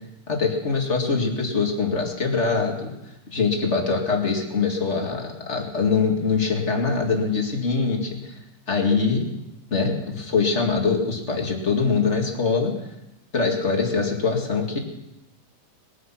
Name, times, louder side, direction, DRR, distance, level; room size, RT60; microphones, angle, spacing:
voice 1, 0.3-2.9 3.3-8.4 8.7-9.3 9.7-12.7 13.3-14.8, left 4 dB, 30° left, 1 dB, 1.5 m, -23 dB
20.5 x 11.0 x 5.8 m, 0.92 s
omnidirectional pair, 4.3 m